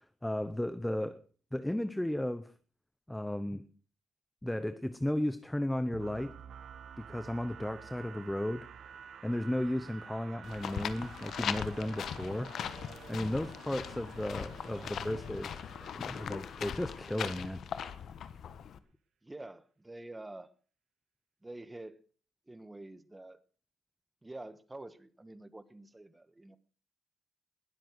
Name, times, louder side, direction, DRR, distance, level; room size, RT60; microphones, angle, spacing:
voice 1, 0.2-1.2 1.5-2.5 3.1-3.6 4.4-6.3 7.0-8.7 9.2-12.5 13.1-15.5 15.9-17.6, left 1 dB, 5° left, 0.8 m, -34 dB
sound 1, 5.9-17.7, right 7 dB, 65° right, 1.4 m, -51 dB
sound 2, 10.4-18.8, left 8 dB, 65° left, 1.3 m, -40 dB
voice 2, 14.6-14.9 19.2-20.5 21.4-22.0 22.5-23.4 24.2-26.6, right 2 dB, 15° right, 1.3 m, -47 dB
20.0 x 7.8 x 6.1 m
cardioid pair, 90°, 0 cm